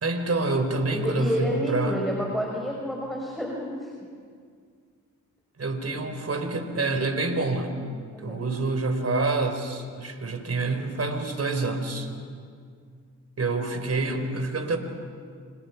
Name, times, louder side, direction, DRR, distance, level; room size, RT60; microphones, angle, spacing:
voice 1, 0.0-2.0 5.6-7.7 8.2-12.1 13.4-14.8, right 3 dB, 45° right, 7 dB, 4.3 m, -27 dB
voice 2, 0.9-3.9 8.1-8.4, equal, ahead, -1 dB, 5.8 m, -29 dB
29.0 x 27.5 x 6.0 m, 2.1 s
supercardioid pair, 50°, 35 cm